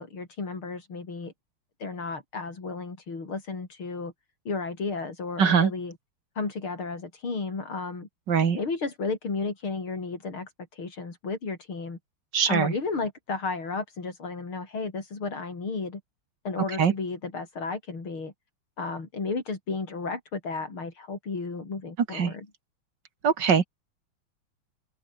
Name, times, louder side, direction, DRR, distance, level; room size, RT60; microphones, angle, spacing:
voice 1, 0.0-1.3 1.8-4.1 4.5-6.0 6.4-8.1 8.6-12.0 12.5-16.0 16.5-18.3 18.8-22.5, left 4 dB, 85° left, 5.4 m, -33 dB
voice 2, 5.4-5.7 8.3-8.6 12.3-12.7 16.8-16.9 22.1-22.3 23.2-23.7, right 6 dB, 60° right, 2.5 m, -22 dB
open air
omnidirectional pair, 2.2 m